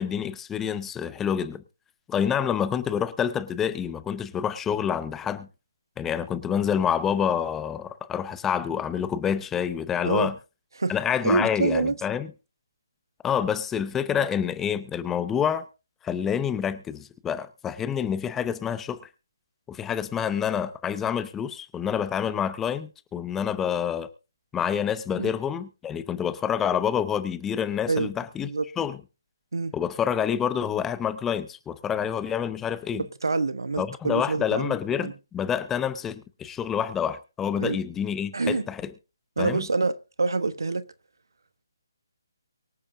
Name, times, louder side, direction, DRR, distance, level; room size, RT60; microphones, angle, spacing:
voice 1, 0.0-1.6 2.1-5.5 6.0-10.4 10.9-12.3 13.2-15.7 16.0-19.0 19.7-24.1 24.5-28.5 28.8-29.0 29.7-33.1 33.8-38.9 39.4-39.7, left 8 dB, 10° left, 0.7 m, -27 dB
voice 2, 11.2-11.9 25.2-25.3 27.9-28.1 28.4-28.6 29.5-29.7 33.0-35.1 37.6-37.8 38.3-38.6 39.4-40.8, right 3 dB, 70° right, 1.0 m, -26 dB
24.0 x 8.6 x 2.6 m
figure-of-eight pair, 145°, 2 cm